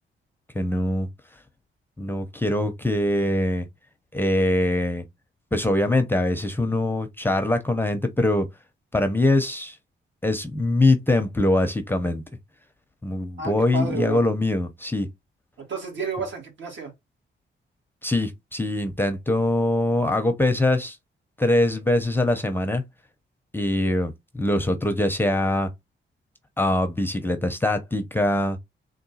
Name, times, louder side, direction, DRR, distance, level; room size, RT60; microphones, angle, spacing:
voice 1, 0.5-1.1 2.0-3.7 4.1-5.1 5.5-8.5 8.9-9.8 10.2-12.2 13.0-15.1 18.0-21.0 21.4-22.9 23.5-25.7 26.6-28.6, left 1 dB, 10° left, 0.5 m, -23 dB
voice 2, 13.4-14.2 15.6-16.9, right 4 dB, 70° right, 2.0 m, -31 dB
3.8 x 2.6 x 4.0 m
wide cardioid pair, 145°, 20 cm